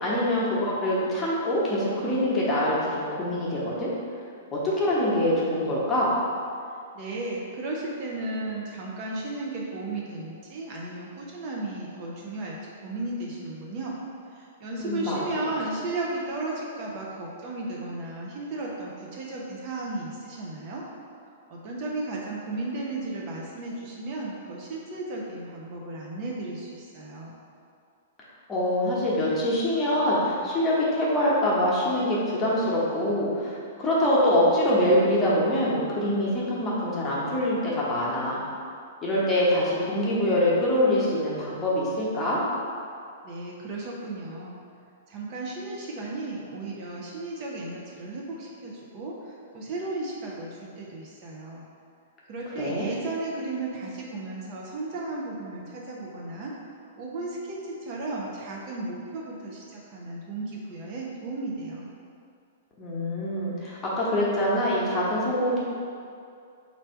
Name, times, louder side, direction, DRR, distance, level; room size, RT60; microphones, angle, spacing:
voice 1, 0.0-3.9 4.5-6.1 14.7-15.5 28.5-38.4 39.0-42.4 52.6-52.9 62.8-65.6, left 1 dB, 20° left, -7 dB, 1.0 m, -24 dB
voice 2, 6.9-13.9 14.3-20.8 21.5-27.4 43.2-44.6 45.1-51.6 52.3-56.5 57.0-61.9, right 2 dB, 40° right, -3 dB, 0.6 m, -34 dB
3.3 x 2.6 x 4.4 m, 2.4 s
figure-of-eight pair, 105°, 0 cm